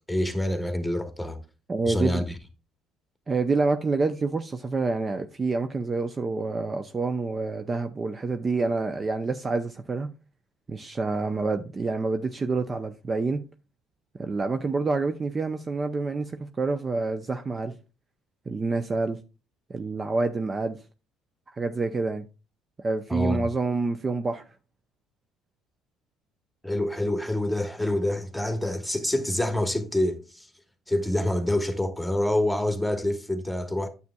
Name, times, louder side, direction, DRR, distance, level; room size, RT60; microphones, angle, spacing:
voice 1, 0.1-1.4 1.9-2.4 23.1-23.5 26.6-30.5 30.9-33.9, left 1 dB, ahead, 1.4 m, -26 dB
voice 2, 1.7-2.3 3.3-10.1 10.7-13.4 14.2-17.7 18.5-19.2 19.7-20.8 21.5-22.3 22.8-24.4, right 3 dB, 30° right, 0.6 m, -27 dB
9.2 x 7.0 x 2.3 m
hypercardioid pair, 70°, 0 cm